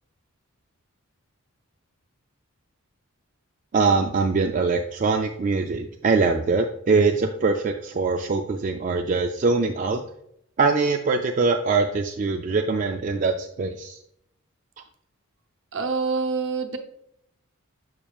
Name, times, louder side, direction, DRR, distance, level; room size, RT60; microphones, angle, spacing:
voice 1, 3.7-10.0 10.6-14.0, right 4 dB, 40° right, 3 dB, 0.4 m, -23 dB
voice 2, 15.7-16.8, right 4 dB, 60° right, 6 dB, 0.8 m, -26 dB
7.0 x 5.9 x 2.3 m, 0.73 s
head